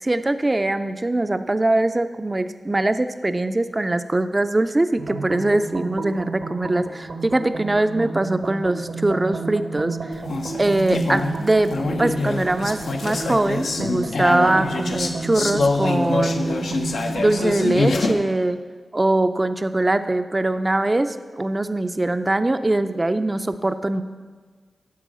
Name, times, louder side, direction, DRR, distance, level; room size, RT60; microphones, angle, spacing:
voice 1, 0.0-10.1 10.6-11.7 12.0-16.7 17.2-18.6 18.9-24.0, right 2 dB, 30° right, 10 dB, 0.4 m, -22 dB
sound 1, 5.0-17.7, right 3 dB, 85° right, 1.0 m, -32 dB
sound 2, 10.1-18.1, left 3 dB, 85° left, 0.6 m, -25 dB
10.5 x 3.8 x 6.2 m, 1.5 s
cardioid pair, 45°, 0 cm